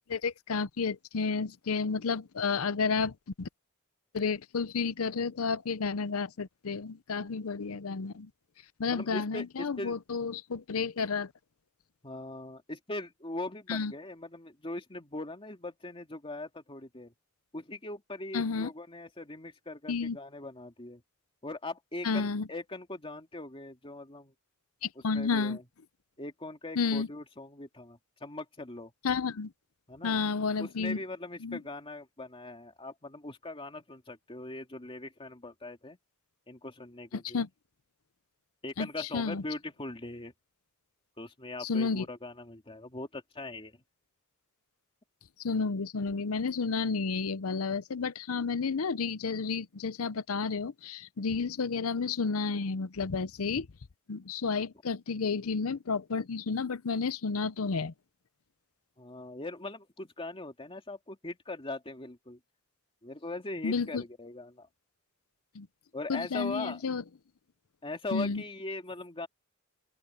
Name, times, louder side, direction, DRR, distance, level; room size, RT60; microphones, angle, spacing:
voice 1, 0.1-3.5 4.1-8.3 8.8-11.3 13.7-13.9 18.3-18.7 19.9-20.2 22.0-22.5 24.8-25.6 26.8-27.1 29.0-29.5 30.0-31.0 31.4-31.6 37.1-37.5 38.8-39.4 41.6-42.0 45.4-53.7 54.1-57.9 63.6-64.0 65.5-65.7 66.1-67.0 68.1-68.4, left 5 dB, 75° left, 0.7 m, -31 dB
voice 2, 8.9-10.0 12.0-17.1 17.5-21.0 21.4-24.3 24.9-25.6 26.2-28.9 29.9-30.2 30.6-36.0 36.5-37.4 38.6-40.3 41.2-43.8 59.0-62.4 63.0-64.7 65.9-66.8 67.8-69.3, left 2 dB, 25° left, 2.4 m, -40 dB
open air
head